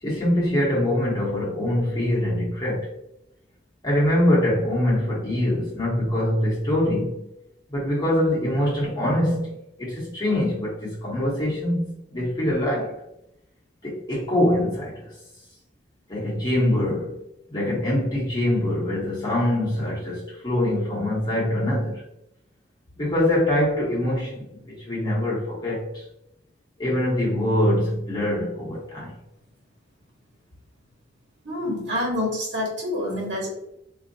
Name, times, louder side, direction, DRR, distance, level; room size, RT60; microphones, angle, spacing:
voice 1, 0.0-2.9 3.8-7.3 7.7-9.5 9.8-13.0 13.8-15.1 16.1-17.2 17.5-22.0 23.0-26.0 26.8-29.1, left 1 dB, 25° left, 1.2 m, -24 dB
voice 2, 31.4-33.5, left 1 dB, 65° right, 1.3 m, -27 dB
4.2 x 2.7 x 2.7 m
head